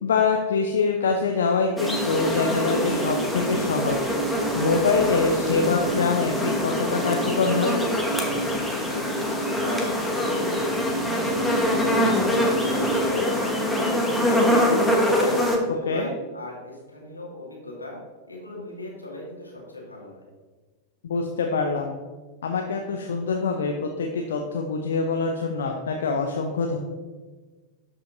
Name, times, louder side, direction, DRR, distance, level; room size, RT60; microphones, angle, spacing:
voice 1, 0.0-7.8 15.9-16.1 21.0-22.0 22.4-26.8, left 4 dB, 65° left, 3 dB, 0.7 m, -25 dB
sound 1, 1.8-15.6, equal, 5° left, 1.3 m, -24 dB
voice 2, 8.8-12.0 12.3-14.8 15.1-18.0 18.3-20.2, left 1 dB, 85° left, -3 dB, 2.2 m, -38 dB
12.5 x 5.4 x 2.7 m, 1.3 s
figure-of-eight pair, 90°, 0 cm